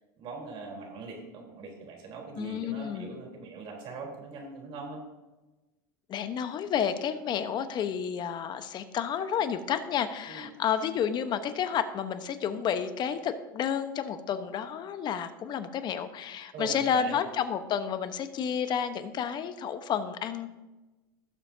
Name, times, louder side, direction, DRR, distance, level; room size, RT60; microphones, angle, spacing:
voice 1, 0.2-5.0 10.3-10.5 16.5-17.2, right 4 dB, 50° right, 0 dB, 3.8 m, -41 dB
voice 2, 2.4-3.1 6.1-20.5, left 8 dB, 40° left, 10 dB, 1.0 m, -31 dB
17.5 x 7.2 x 2.8 m, 1.1 s
hypercardioid pair, 105°, 11 cm